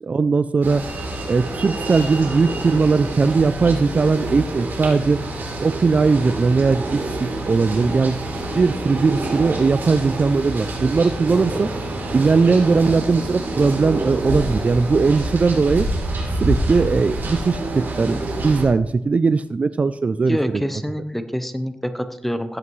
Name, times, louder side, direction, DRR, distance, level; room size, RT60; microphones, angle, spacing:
voice 1, 0.0-0.8 1.3-5.2 5.6-8.2 8.6-11.7 12.1-15.9 16.4-20.6, right 4 dB, 40° right, 14 dB, 0.3 m, -19 dB
sound 1, 0.6-18.6, right 1 dB, 70° right, 3.4 m, -27 dB
voice 2, 20.3-22.6, equal, 5° left, 9 dB, 0.8 m, -26 dB
14.5 x 8.3 x 3.2 m, 0.83 s
wide cardioid pair, 105°, 4 cm